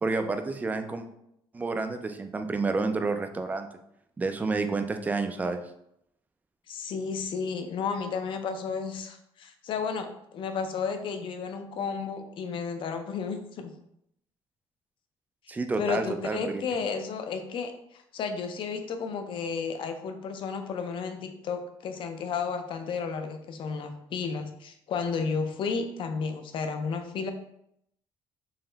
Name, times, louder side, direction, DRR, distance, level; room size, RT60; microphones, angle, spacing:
voice 1, 0.0-1.1 1.5-3.7 4.2-5.6 15.5-16.6, right 3 dB, 15° right, 7 dB, 0.3 m, -29 dB
voice 2, 6.7-13.7 15.8-27.3, left 5 dB, 50° left, 6 dB, 0.5 m, -32 dB
4.0 x 2.1 x 3.8 m, 0.76 s
cardioid pair, 140°, 11 cm